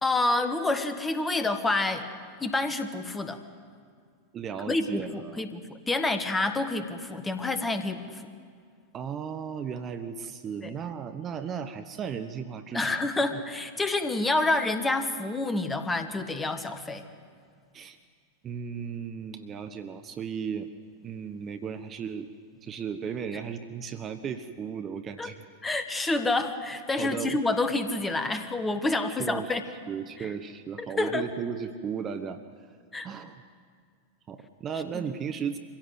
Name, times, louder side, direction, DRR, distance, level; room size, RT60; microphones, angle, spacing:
voice 1, 0.0-2.1 2.4-3.4 4.7-8.2 10.6-10.7 12.7-17.1 25.2-25.3 25.6-29.6 30.2-30.3 30.8-31.2 32.9-33.1 34.9-35.0, left 2 dB, 15° left, 9 dB, 1.5 m, -28 dB
voice 2, 4.3-5.5 8.9-13.0 13.3-13.4 17.7-18.0 18.4-20.7 21.0-22.3 22.6-25.4 27.0-27.4 29.2-29.4 29.9-32.4 33.0-33.4 34.3-35.6, right 7 dB, 25° right, 9 dB, 0.9 m, -35 dB
24.5 x 16.0 x 8.1 m, 2.1 s
figure-of-eight pair, 90°, 0 cm